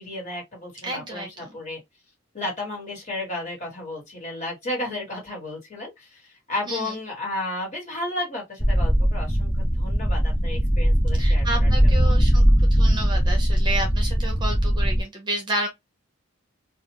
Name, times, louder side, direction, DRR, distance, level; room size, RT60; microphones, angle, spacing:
voice 1, 0.0-1.8 2.3-11.7 12.0-12.1, left 1 dB, 35° left, 1.5 m, -33 dB
voice 2, 0.8-1.6 6.7-6.9 11.1-15.7, right 1 dB, 20° right, 0.7 m, -31 dB
sound 1, 8.6-15.0, equal, 5° left, 0.3 m, -20 dB
2.4 x 2.4 x 2.9 m
head